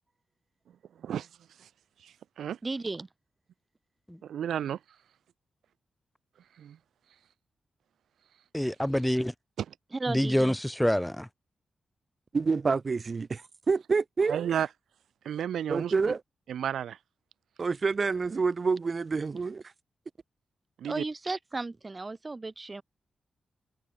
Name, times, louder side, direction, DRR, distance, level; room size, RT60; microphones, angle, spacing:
voice 1, 2.0-2.6 4.2-4.8 6.6-6.8 9.6-9.7 14.3-14.7 15.2-15.9 16.5-17.0 20.8-21.0, right 9 dB, 85° right, 3.0 m, -32 dB
voice 2, 2.6-3.1 9.9-10.6 20.8-22.8, right 3 dB, 35° right, 4.6 m, -34 dB
voice 3, 8.5-9.3 10.1-11.3, equal, 5° left, 1.0 m, -26 dB
voice 4, 12.3-14.4 15.7-16.2 17.6-19.6, right 4 dB, 50° right, 1.0 m, -27 dB
supercardioid pair, 50°, 0 cm